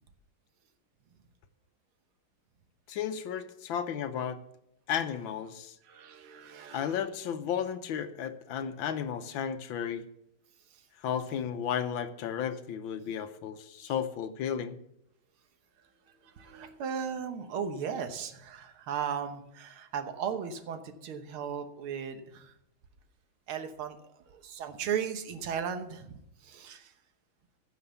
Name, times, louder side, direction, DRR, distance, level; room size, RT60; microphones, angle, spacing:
voice 1, 2.9-4.4 4.9-5.7 6.7-10.0 11.0-14.8, left 8 dB, 75° left, 10 dB, 1.5 m, -33 dB
voice 2, 5.9-7.0 13.8-13.9 16.2-22.5 23.5-24.0 24.3-26.9, right 7 dB, 85° right, 8 dB, 2.0 m, -36 dB
15.5 x 5.7 x 6.9 m, 0.80 s
omnidirectional pair, 2.3 m